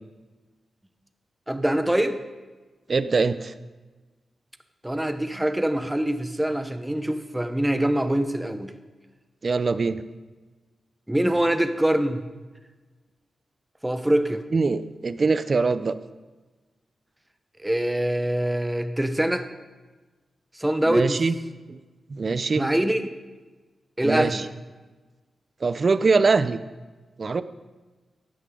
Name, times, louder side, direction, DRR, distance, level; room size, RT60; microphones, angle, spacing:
voice 1, 1.5-2.2 4.8-8.7 11.1-12.2 13.8-14.4 17.6-19.5 20.5-21.2 22.6-23.1 24.0-24.5, right 1 dB, 10° right, 9 dB, 1.0 m, -24 dB
voice 2, 2.9-3.5 9.4-10.0 14.5-16.0 20.9-21.3 21.7-21.8 22.1-22.7 24.0-24.4 25.6-26.6 27.2-27.4, right 4 dB, 50° right, 14 dB, 0.6 m, -23 dB
15.0 x 10.5 x 3.8 m, 1.3 s
cardioid pair, 60°, 0 cm